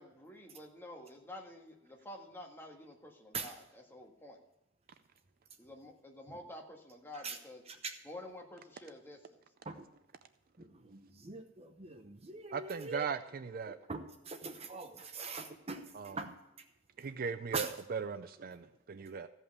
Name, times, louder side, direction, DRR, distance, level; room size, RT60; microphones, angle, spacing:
voice 1, 0.0-4.4 5.6-7.6 8.0-9.4, left 1 dB, 10° left, 0 dB, 1.7 m, -50 dB
voice 2, 10.6-13.1 13.7-16.3 17.5-17.7, right 4 dB, 30° right, 6 dB, 0.8 m, -42 dB
voice 3, 12.5-13.8 15.9-16.2 17.0-19.3, right 6 dB, 50° right, 12 dB, 0.4 m, -38 dB
15.0 x 5.6 x 6.7 m, 0.89 s
head